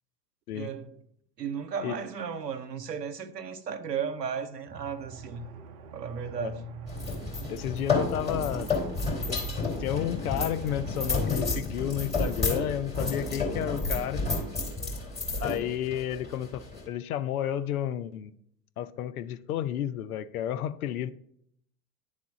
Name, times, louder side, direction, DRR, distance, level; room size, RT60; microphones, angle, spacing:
voice 1, 0.5-0.9 1.4-5.4 5.9-6.7, right 6 dB, 85° right, 0.8 m, -35 dB
Aircraft, 4.7-11.2, right 6 dB, 40° right, 0.7 m, -44 dB
sound 1, 6.9-16.9, left 3 dB, 15° left, 2.6 m, -31 dB
voice 2, 7.5-8.7 9.3-9.4 9.8-14.2 15.4-18.3 18.8-21.1, left 10 dB, 65° left, 0.7 m, -31 dB
10.5 x 3.6 x 3.9 m
figure-of-eight pair, 95°, 48 cm